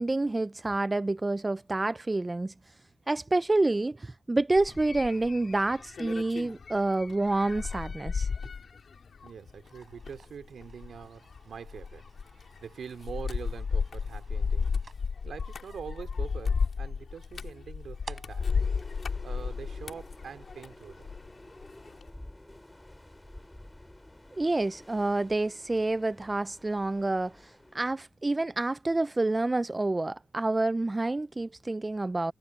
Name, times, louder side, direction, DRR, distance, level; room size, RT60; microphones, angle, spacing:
voice 1, 0.0-2.5 3.1-8.3 24.4-32.3, right 2 dB, 25° right, 0.4 m, -28 dB
sound 1, 4.6-21.3 21.6-22.1, left 5 dB, 65° left, 3.3 m, -34 dB
voice 2, 9.2-12.0 12.3-14.8 15.2-18.5 19.2-21.1, right 7 dB, 80° right, 3.4 m, -44 dB
sound 2, 9.6-20.0, right 5 dB, 55° right, 7.4 m, -55 dB
sound 3, 18.4-28.0, left 1 dB, 15° left, 3.8 m, -50 dB
cardioid pair, 60°, 0 cm